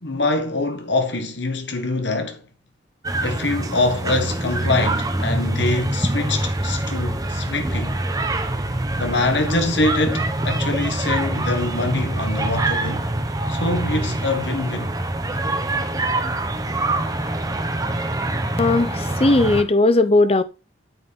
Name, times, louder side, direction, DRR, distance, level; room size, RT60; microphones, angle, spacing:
voice 1, 0.0-2.4 3.2-8.0 9.0-13.1 13.5-14.9, left 2 dB, 70° left, 1.7 m, -24 dB
sound 1, 3.0-19.6, right 1 dB, 20° right, 0.9 m, -24 dB
voice 2, 18.6-20.4, left 2 dB, 30° left, 0.7 m, -17 dB
8.9 x 6.6 x 3.6 m
head